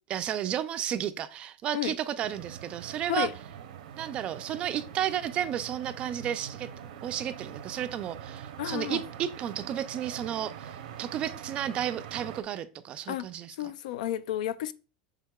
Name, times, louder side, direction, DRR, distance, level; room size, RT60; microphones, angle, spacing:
voice 1, 0.1-3.3 4.0-6.7 7.0-13.7, right 10 dB, 25° right, 0.3 m, -33 dB
sound 1, 2.2-12.4, right 9 dB, 90° right, 0.7 m, -43 dB
voice 2, 8.6-9.0 13.1-13.2 13.6-14.7, left 12 dB, 85° left, 0.3 m, -31 dB
6.4 x 3.6 x 2.2 m
supercardioid pair, 165°, 4 cm